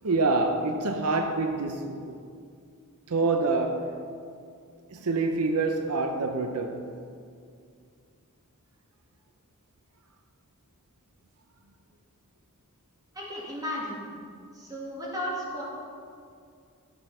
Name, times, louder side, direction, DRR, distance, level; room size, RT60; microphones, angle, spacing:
voice 1, 0.0-2.2 3.1-3.9 4.9-6.9, right 3 dB, 80° right, 6 dB, 0.7 m, -26 dB
voice 2, 13.1-14.0 14.5-15.6, equal, 15° right, -5 dB, 2.5 m, -34 dB
12.5 x 6.8 x 5.6 m, 2.3 s
head